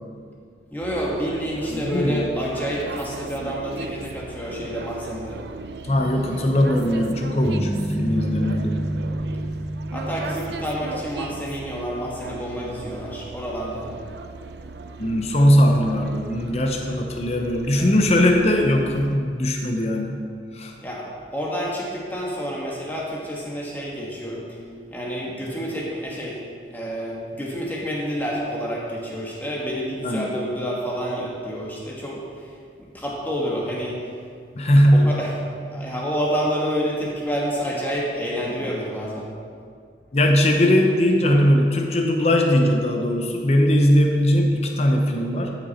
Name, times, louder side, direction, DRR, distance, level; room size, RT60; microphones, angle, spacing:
voice 1, 0.7-5.4 9.9-13.9 20.8-24.6 24.9-26.4 26.7-32.5 32.8-34.0 34.9-35.3 35.7-39.3, equal, 10° left, -4 dB, 1.6 m, -28 dB
sound 1, 0.8-19.2, right 3 dB, 70° right, 0.5 m, -38 dB
voice 2, 1.7-2.3 5.8-8.7 15.0-20.2 20.5-20.7 30.0-30.3 34.5-35.2 40.1-45.5, equal, 35° left, 2 dB, 0.7 m, -19 dB
sound 2, 7.4-11.6, right 1 dB, 45° right, 1.7 m, -28 dB
12.5 x 6.1 x 4.2 m, 2.2 s
head